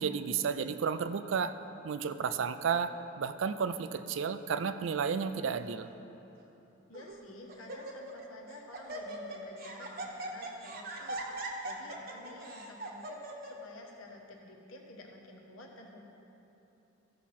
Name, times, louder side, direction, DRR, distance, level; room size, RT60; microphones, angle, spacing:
voice 1, 0.0-1.5 1.8-5.9, right 6 dB, 70° right, 11 dB, 0.4 m, -32 dB
Laughter, 5.2-5.6 6.3-6.4 6.9-7.2 7.5-8.2 8.5-13.5, right 2 dB, 45° right, 0.9 m, -41 dB
voice 2, 6.9-16.0, left 1 dB, 90° left, 1 dB, 1.2 m, -51 dB
14.0 x 6.0 x 4.2 m, 3.0 s
head